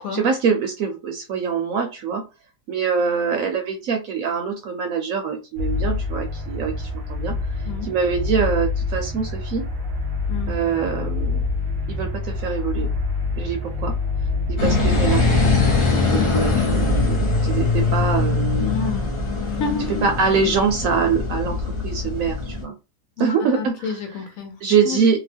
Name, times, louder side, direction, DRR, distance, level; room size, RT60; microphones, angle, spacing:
voice 1, 0.1-2.2 2.7-7.3 7.8-9.6 10.5-11.4 11.9-12.9 13.4-13.9 14.6-15.6 16.0-18.7 20.0-22.7 23.2-24.0 24.6-25.2, right 6 dB, 65° right, 4 dB, 0.9 m, -24 dB
sound 1, 5.6-15.8, left 3 dB, 80° right, 0.4 m, -26 dB
sound 2, 14.6-22.6, left 3 dB, 35° left, 0.5 m, -21 dB
voice 2, 18.6-19.1 19.5-20.1 23.2-23.3 23.6-24.6 24.8-25.0, left 4 dB, 65° left, 3 dB, 1.1 m, -29 dB
2.9 x 2.2 x 3.3 m, 0.29 s
omnidirectional pair, 1.8 m